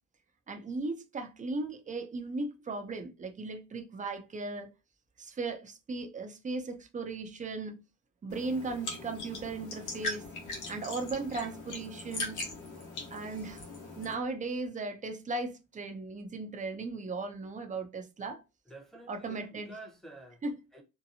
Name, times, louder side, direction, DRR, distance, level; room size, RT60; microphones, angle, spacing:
voice 1, 0.5-4.7 5.2-7.8 8.2-10.3 10.7-12.4 13.1-13.6 14.0-18.4 19.1-19.7 20.4-20.6, right 3 dB, 25° right, 0.6 m, -37 dB
sound 1, 8.3-14.1, left 2 dB, 80° left, 1.0 m, -40 dB
voice 2, 18.7-20.4 20.7-20.8, right 1 dB, ahead, 0.9 m, -49 dB
2.8 x 2.2 x 2.6 m
cardioid pair, 90°, 30 cm